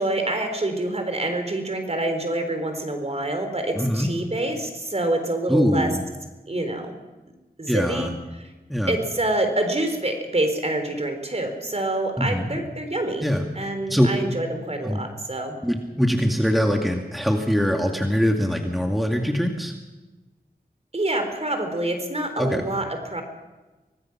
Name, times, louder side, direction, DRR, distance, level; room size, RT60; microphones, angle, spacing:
voice 1, 0.0-5.9 6.5-7.0 7.6-8.1 8.9-13.2 13.5-15.6 20.9-23.2, right 1 dB, 40° right, 6 dB, 4.0 m, -26 dB
voice 2, 3.8-4.1 5.5-6.0 7.7-8.1 8.7-9.0 12.2-12.6 13.2-13.5 13.9-14.1 14.8-15.0 15.6-19.7 22.4-22.6, equal, ahead, 2 dB, 2.2 m, -22 dB
25.0 x 19.0 x 6.1 m, 1.1 s
wide cardioid pair, 65°, 16 cm